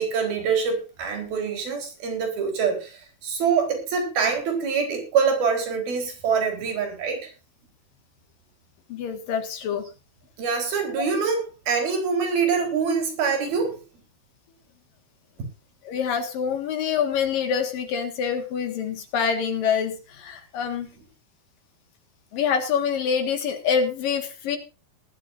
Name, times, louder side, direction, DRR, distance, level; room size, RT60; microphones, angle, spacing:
voice 1, 0.0-7.3 10.4-13.8, right 5 dB, 85° right, 4 dB, 6.1 m, -25 dB
voice 2, 8.9-9.8 15.9-20.9 22.3-24.6, left 7 dB, 70° left, 6 dB, 3.5 m, -26 dB
19.5 x 13.0 x 2.6 m, 0.31 s
omnidirectional pair, 4.2 m